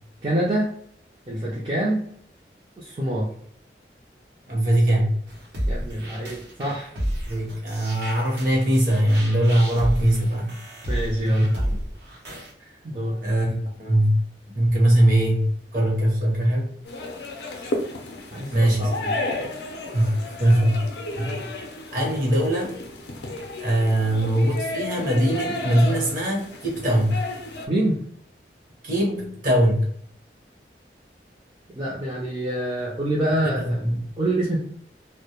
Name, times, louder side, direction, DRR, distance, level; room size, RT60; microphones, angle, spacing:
voice 1, 0.2-0.7 1.3-2.1 2.8-3.3 5.7-6.9 10.9-11.5 12.8-13.2 18.3-19.2 27.7-28.0 31.7-33.9 34.2-34.6, right 1 dB, 30° right, -5 dB, 0.4 m, -26 dB
voice 2, 4.5-5.1 7.3-10.5 11.2-11.8 13.2-14.3 14.5-16.7 18.5-18.9 19.9-20.8 21.1-21.5 21.9-22.8 23.6-27.2 28.8-29.8 33.4-34.0, right 1 dB, 50° right, -2 dB, 0.8 m, -21 dB
sound 1, 5.3-12.5, equal, 85° right, 0.8 m, -31 dB
sound 2, 16.9-27.7, left 2 dB, 70° left, 0.4 m, -33 dB
2.1 x 2.0 x 2.8 m, 0.63 s
head